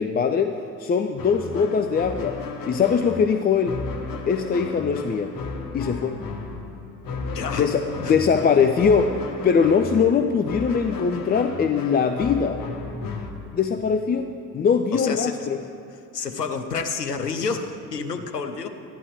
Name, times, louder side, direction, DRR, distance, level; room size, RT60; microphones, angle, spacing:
voice 1, 0.0-2.4 2.7-3.8 4.3-5.3 5.7-6.2 7.6-9.2 9.4-12.6 13.5-14.3 14.5-15.6, left 6 dB, 20° left, 7 dB, 0.5 m, -21 dB
sound 1, 1.2-13.3, left 3 dB, 45° left, 1.5 m, -34 dB
voice 2, 7.3-7.7 8.0-8.2 14.9-15.5 16.1-18.7, left 5 dB, 85° left, 7 dB, 0.8 m, -29 dB
15.0 x 11.0 x 4.8 m, 2.5 s
figure-of-eight pair, 55°, 46 cm